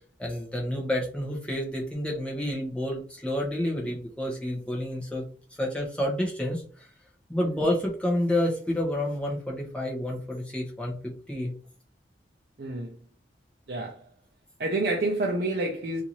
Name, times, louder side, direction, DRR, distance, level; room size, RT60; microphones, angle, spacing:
voice 1, 0.2-5.2 5.6-6.9 7.3-11.5, left 1 dB, 5° left, 0.8 m, -29 dB
voice 2, 12.6-12.9 13.7-14.0 14.6-16.0, right 2 dB, 60° right, 0.5 m, -28 dB
2.7 x 2.5 x 2.9 m
head